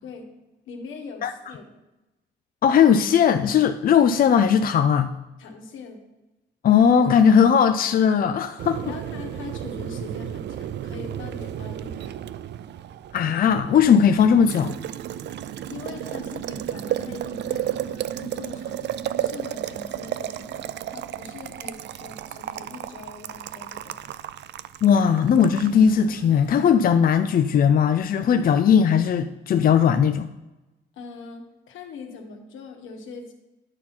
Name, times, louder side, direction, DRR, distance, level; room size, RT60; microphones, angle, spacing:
voice 1, 0.6-1.8 5.4-6.0 8.8-12.3 15.7-18.9 19.2-24.0 30.9-33.3, left 4 dB, 80° left, 3 dB, 1.6 m, -41 dB
voice 2, 2.6-5.1 6.6-8.8 13.1-14.7 24.8-30.3, left 7 dB, 45° left, 9 dB, 0.5 m, -18 dB
Boiling, 8.6-26.5, right 11 dB, 60° right, 0.4 m, -33 dB
10.5 x 4.3 x 5.8 m, 1.0 s
cardioid pair, 90°, 20 cm